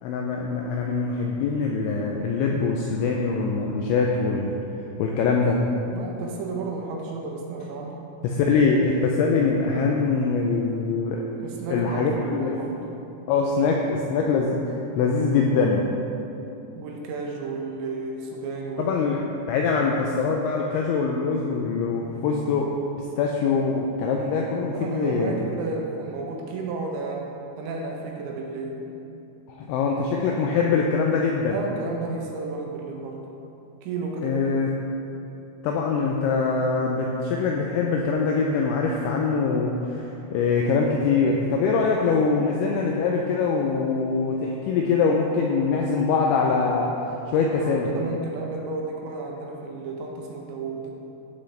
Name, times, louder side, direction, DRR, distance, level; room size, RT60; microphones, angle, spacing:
voice 1, 0.0-4.5 5.0-5.6 8.2-11.2 11.7-12.6 13.3-15.8 18.8-22.7 23.0-25.5 29.5-31.6 34.2-34.7 35.6-46.9 47.3-47.9, left 4 dB, 85° left, 0 dB, 2.6 m, -23 dB
voice 2, 5.9-8.1 11.4-12.8 16.8-19.0 19.6-20.2 24.7-27.3 27.6-28.9 31.5-33.3 33.8-34.4 47.4-50.9, right 3 dB, 75° right, 0 dB, 2.8 m, -32 dB
15.5 x 6.3 x 3.3 m, 2.8 s
omnidirectional pair, 6.0 m